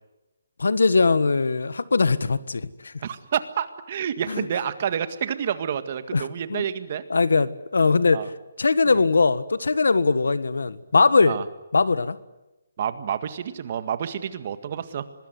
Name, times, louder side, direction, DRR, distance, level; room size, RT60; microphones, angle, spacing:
voice 1, 0.6-2.9 4.3-4.5 6.1-6.6 7.1-8.2 8.6-11.4 11.7-12.2, left 4 dB, 85° left, 1.5 m, -21 dB
voice 2, 3.0-7.0 8.1-8.3 8.9-9.0 11.2-11.4 12.8-15.0, right 8 dB, 40° right, 1.8 m, -29 dB
25.5 x 20.5 x 9.6 m
hypercardioid pair, 165°, 0 cm